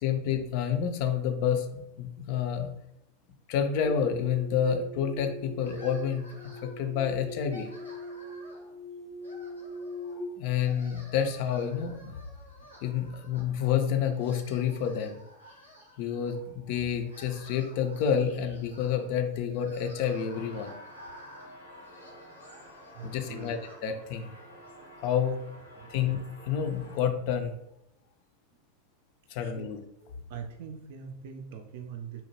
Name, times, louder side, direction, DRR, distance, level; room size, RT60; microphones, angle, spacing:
voice 1, 0.0-2.7 3.5-6.3 6.6-7.7 10.4-12.2 12.8-15.2 16.0-20.7 23.0-24.3 25.0-25.4 25.9-26.2 26.4-27.5 29.3-29.8, left 8 dB, 50° left, 6 dB, 0.4 m, -29 dB
sound 1, 3.9-10.2, left 1 dB, 10° right, 0.6 m, -42 dB
sound 2, 5.6-6.9 7.3-8.7 9.2-10.2 10.5-13.8 14.1-16.3 16.9-23.8, equal, 85° right, 0.7 m, -52 dB
sound 3, 20.3-27.0, equal, 80° left, 0.7 m, -51 dB
voice 2, 22.9-23.5 25.8-26.0 29.4-29.7 30.0-32.2, right 7 dB, 55° right, 5 dB, 0.4 m, -43 dB
2.7 x 2.0 x 2.9 m, 0.83 s
figure-of-eight pair, 85°, 0 cm